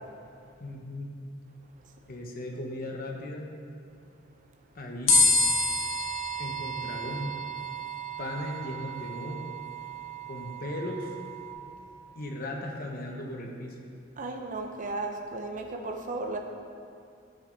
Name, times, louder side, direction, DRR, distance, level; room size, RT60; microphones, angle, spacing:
voice 1, 0.6-1.1 2.1-3.5 4.7-5.2 6.4-7.3 8.2-9.4 10.3-11.1 12.1-13.8, left 1 dB, 45° left, 0 dB, 1.0 m, -37 dB
sound 1, 5.1-11.5, left 2 dB, 75° left, 1.7 m, -29 dB
voice 2, 14.2-16.4, right 2 dB, 40° right, 3 dB, 0.6 m, -34 dB
12.5 x 6.6 x 4.0 m, 2.4 s
head